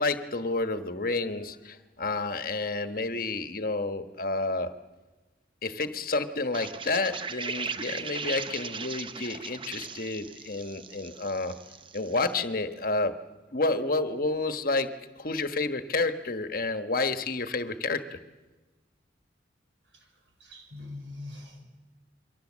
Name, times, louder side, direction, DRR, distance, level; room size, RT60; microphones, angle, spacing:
voice 1, 0.0-4.7 5.6-11.6 11.9-13.2 13.5-14.9 15.2-18.2, left 3 dB, 50° left, 9 dB, 1.3 m, -30 dB
sound 1, 6.5-12.4, right 5 dB, 25° right, 0.8 m, -38 dB
voice 2, 20.4-21.6, left 2 dB, 85° right, 4 dB, 6.2 m, -42 dB
27.5 x 23.5 x 7.4 m, 1.2 s
head